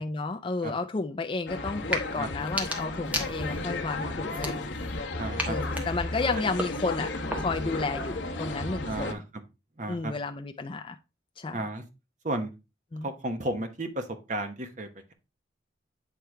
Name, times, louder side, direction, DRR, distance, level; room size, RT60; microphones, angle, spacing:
voice 1, 0.0-4.7 5.5-9.1 9.9-11.0 11.4-11.6 12.9-13.1, left 3 dB, 25° left, 0.4 m, -32 dB
sound 1, 1.5-9.1, left 2 dB, 70° left, 1.1 m, -34 dB
sound 2, 1.8-2.1 2.4-3.7 4.3-5.0 5.4-7.7, equal, 10° right, 1.2 m, -35 dB
voice 2, 5.2-5.6 6.4-6.5 8.8-9.2 9.8-10.1 11.5-11.8 12.2-12.5 13.0-15.1, right 1 dB, 40° right, 1.1 m, -33 dB
8.4 x 3.4 x 4.4 m
head